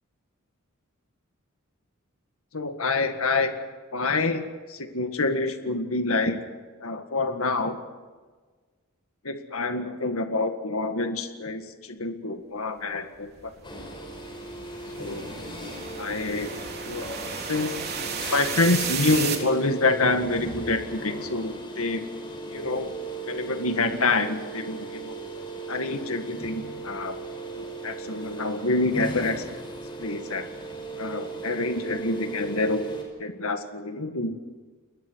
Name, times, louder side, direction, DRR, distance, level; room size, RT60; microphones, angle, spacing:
voice 1, 2.5-3.5 3.9-6.4 6.8-7.8 9.2-13.5 15.0-15.3 16.0-16.6 16.8-17.1 17.5-17.9 18.3-22.0 22.5-22.9 23.3-25.2 25.7-27.2 27.6-29.4 30.0-30.5 31.0-32.8 33.2-34.3, left 3 dB, 75° left, 7 dB, 1.9 m, -27 dB
sound 1, 13.4-19.4, right 7 dB, 50° right, 3.7 m, -34 dB
sound 2, 13.6-33.0, right 2 dB, 25° left, 5.9 m, -37 dB
30.0 x 21.0 x 4.7 m, 1.4 s
head